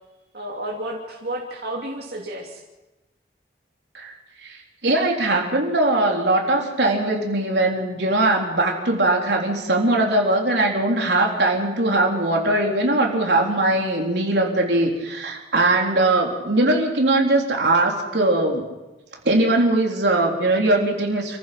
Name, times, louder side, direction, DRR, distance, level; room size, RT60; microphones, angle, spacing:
voice 1, 0.3-2.6, right 1 dB, 60° right, -3 dB, 2.9 m, -31 dB
voice 2, 4.4-18.6 19.3-21.4, right 2 dB, 75° right, 0 dB, 3.7 m, -20 dB
28.0 x 15.5 x 6.0 m, 1.1 s
head